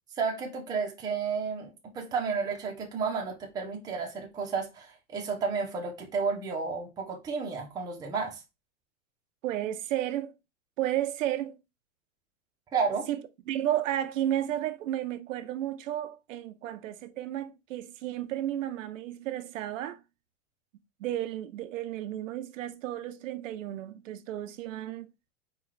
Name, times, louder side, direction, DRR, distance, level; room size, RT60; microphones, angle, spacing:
voice 1, 0.2-8.4 12.7-13.1, right 5 dB, 10° right, 0.6 m, -32 dB
voice 2, 9.4-10.3 10.8-11.6 13.1-20.0 21.0-25.1, right 12 dB, 70° right, 0.6 m, -33 dB
4.5 x 2.3 x 3.9 m
supercardioid pair, 150°, 40 cm